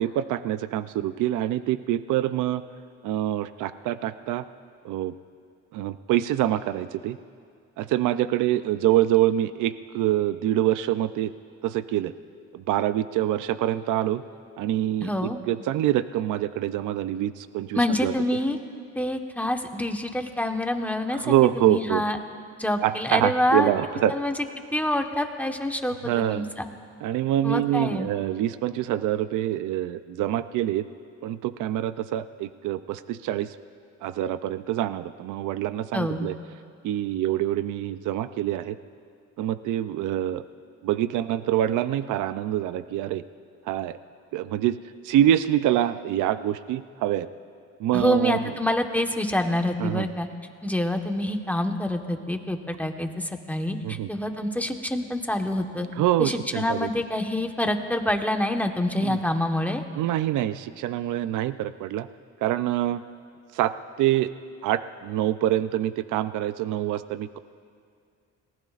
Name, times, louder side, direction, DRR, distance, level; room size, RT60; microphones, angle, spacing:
voice 1, 0.0-2.6 3.0-4.4 4.8-5.1 5.7-7.2 7.8-11.3 11.6-12.1 12.5-14.2 14.6-15.1 15.5-18.1 21.1-22.1 22.8-24.1 26.0-26.5 27.0-30.8 31.2-33.6 34.0-36.4 36.8-38.8 39.4-40.4 40.8-43.2 43.7-44.0 44.3-44.8 45.0-47.3 47.8-48.5 49.8-50.1 53.8-54.1 55.9-56.9 59.0-59.2 60.0-62.1 62.4-63.0 63.5-64.3 64.6-67.4, right 12 dB, 85° right, 12 dB, 0.5 m, -25 dB
voice 2, 15.0-15.4 17.7-18.6 18.9-22.2 22.6-23.7 24.1-24.3 24.7-26.7 27.4-28.1 35.9-36.3 47.9-50.3 50.6-55.9 56.2-59.8, left 1 dB, 5° left, 4 dB, 1.2 m, -26 dB
29.5 x 19.0 x 2.5 m, 2.3 s
cardioid pair, 90°, 30 cm